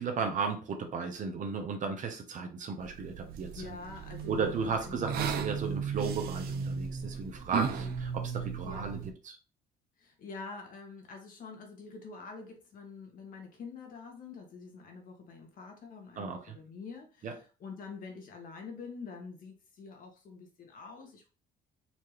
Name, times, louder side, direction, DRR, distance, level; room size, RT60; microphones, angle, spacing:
voice 1, 0.0-3.8 4.3-9.4 16.2-16.5 17.2-17.3, right 5 dB, 50° right, 4 dB, 1.0 m, -35 dB
sound 1, 2.8-9.1, right 7 dB, 65° right, 0.6 m, -36 dB
voice 2, 3.5-5.0 7.6-7.9 8.6-9.1 10.0-21.3, left 4 dB, 55° left, 2 dB, 1.5 m, -46 dB
4.3 x 2.9 x 3.2 m, 0.34 s
cardioid pair, 110°, 17 cm